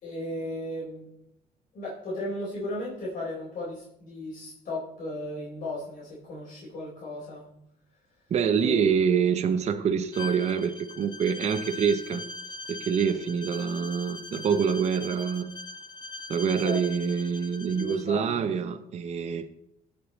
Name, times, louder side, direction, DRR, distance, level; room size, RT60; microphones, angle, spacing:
voice 1, 0.0-1.1 1.7-7.4 8.5-8.9 9.2-9.3 16.6-16.8 17.7-18.5, left 1 dB, 50° left, 4.0 m, -35 dB
voice 2, 8.3-12.2 12.7-15.5 16.3-19.5, right 7 dB, 40° right, 0.7 m, -26 dB
Bowed string instrument, 10.1-18.0, left 3 dB, 25° left, 1.1 m, -41 dB
16.0 x 5.5 x 4.1 m
cardioid pair, 110°, 17 cm